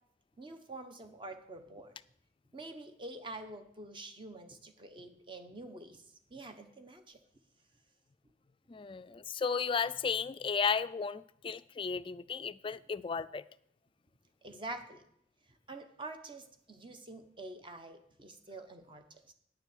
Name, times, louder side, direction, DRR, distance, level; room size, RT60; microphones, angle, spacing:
voice 1, 0.4-2.0 2.5-6.0 6.3-7.2 14.4-15.0 15.7-19.3, right 2 dB, 30° right, 1.1 m, -47 dB
voice 2, 8.7-13.4, left 6 dB, 30° left, 0.3 m, -34 dB
9.8 x 7.1 x 7.3 m
head